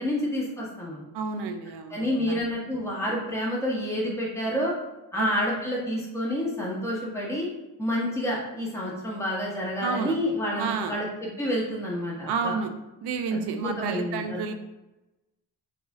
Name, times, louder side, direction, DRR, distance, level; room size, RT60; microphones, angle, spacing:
voice 1, 0.0-1.1 1.9-4.7 5.1-7.5 7.8-11.1 11.4-12.5 13.3-14.5, left 1 dB, 5° left, -5 dB, 1.4 m, -29 dB
voice 2, 1.1-2.1 5.1-5.3 9.8-10.2 10.6-11.0 12.3-12.7 13.0-14.5, right 5 dB, 65° right, 6 dB, 0.5 m, -30 dB
4.2 x 2.6 x 3.6 m, 1.0 s
cardioid pair, 50°, 43 cm